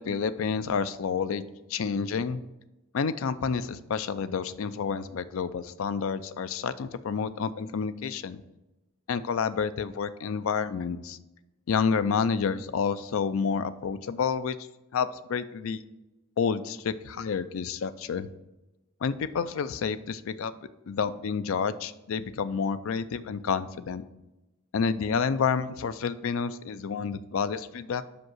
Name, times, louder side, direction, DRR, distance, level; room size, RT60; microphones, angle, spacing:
voice 1, 0.0-1.4 1.7-2.4 2.9-8.4 9.1-11.2 11.7-14.6 14.9-15.8 16.4-18.3 19.0-20.5 20.9-24.0 24.7-28.0, left 6 dB, 70° left, 13 dB, 0.4 m, -29 dB
5.7 x 5.2 x 6.1 m, 1.0 s
head